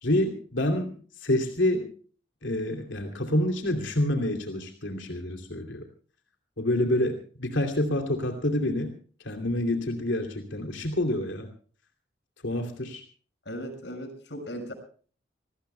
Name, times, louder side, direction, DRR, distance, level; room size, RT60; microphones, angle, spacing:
voice 1, 0.0-1.9 2.4-5.8 6.6-8.9 9.2-11.5 12.4-13.0, left 1 dB, 85° left, 4 dB, 2.8 m, -27 dB
voice 2, 13.4-14.7, equal, 70° left, 6 dB, 6.3 m, -37 dB
27.0 x 20.0 x 2.2 m, 0.42 s
head